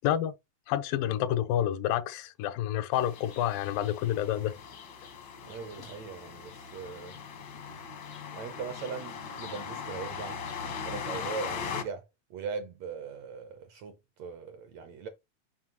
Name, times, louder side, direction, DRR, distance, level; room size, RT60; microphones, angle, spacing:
voice 1, 0.0-0.3 0.7-4.5 5.8-5.9, left 11 dB, 90° left, 2.4 m, -29 dB
sound 1, 2.9-11.8, left 7 dB, 70° left, 1.0 m, -40 dB
voice 2, 5.4-7.1 8.3-10.4 10.8-12.0 12.3-15.1, right 6 dB, 75° right, 1.6 m, -40 dB
7.4 x 5.6 x 2.9 m
omnidirectional pair, 3.9 m